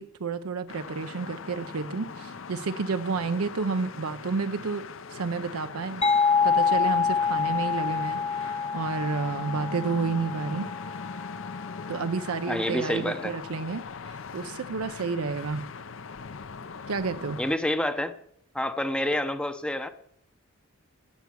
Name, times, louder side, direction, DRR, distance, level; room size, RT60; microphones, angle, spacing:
voice 1, 0.0-6.0 6.4-10.7 11.9-15.7 16.9-17.4, right 4 dB, 85° right, 10 dB, 0.6 m, -31 dB
sound 1, 0.7-17.6, left 5 dB, 60° left, 0.6 m, -40 dB
sound 2, 6.0-11.5, left 5 dB, 25° left, 0.9 m, -26 dB
voice 2, 12.5-13.3 17.4-18.1 18.5-19.9, left 1 dB, 5° left, 9 dB, 0.6 m, -28 dB
13.5 x 8.2 x 6.2 m, 0.71 s
head